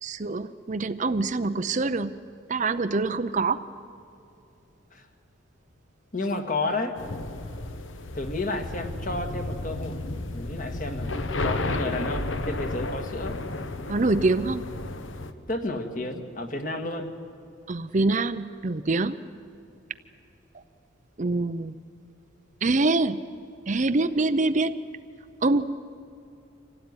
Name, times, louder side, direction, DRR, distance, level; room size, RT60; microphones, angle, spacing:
voice 1, 0.0-2.1 2.5-3.6 13.9-14.6 17.7-19.2 21.2-21.8 22.6-23.2 23.7-24.8 25.4-25.6, right 3 dB, 35° right, 11 dB, 0.6 m, -25 dB
voice 2, 6.1-7.0 8.1-10.0 10.3-11.1 11.4-13.4 15.5-17.1, left 2 dB, 40° left, 5 dB, 1.8 m, -31 dB
sound 1, 7.0-15.3, left 2 dB, 65° left, 1.1 m, -32 dB
26.0 x 17.0 x 9.6 m, 2.6 s
head